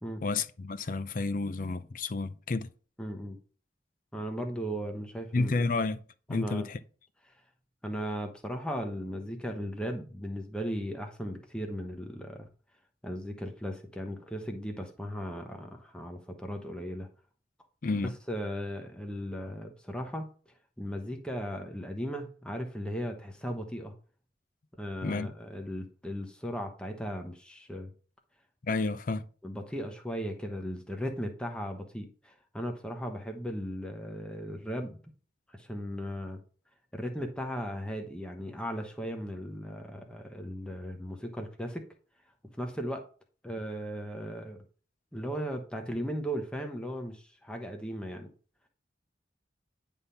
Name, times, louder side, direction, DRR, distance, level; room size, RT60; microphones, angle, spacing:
voice 1, 0.2-2.7 5.3-6.0 6.3-6.8 17.8-18.1 25.0-25.3 28.6-29.2, left 3 dB, 50° left, 0.5 m, -30 dB
voice 2, 3.0-3.4 4.1-5.5 6.3-6.7 7.3-7.4 7.8-12.5 13.0-17.1 17.9-20.3 20.8-23.9 24.7-27.9 29.4-35.0 35.5-36.4 36.9-41.8 42.6-43.0 43.4-44.6 45.1-48.3, equal, 5° left, 0.9 m, -37 dB
9.8 x 3.6 x 5.7 m
head